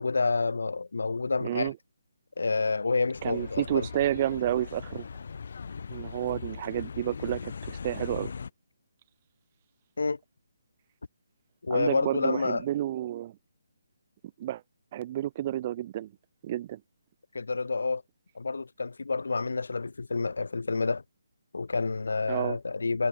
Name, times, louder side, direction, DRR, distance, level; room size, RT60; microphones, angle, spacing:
voice 1, 0.0-1.7 2.4-3.9 10.0-10.2 11.6-12.7 17.3-18.0 18.3-21.0 21.5-23.1, left 4 dB, 75° left, 6.4 m, -29 dB
voice 2, 1.4-1.7 3.2-5.1 5.9-8.3 11.7-13.3 14.4-14.6 14.9-16.1 16.4-16.8 22.3-22.6, right 13 dB, 30° right, 7.1 m, -30 dB
sound 1, 3.1-8.5, left 5 dB, 60° left, 6.9 m, -39 dB
figure-of-eight pair, 155°, 0 cm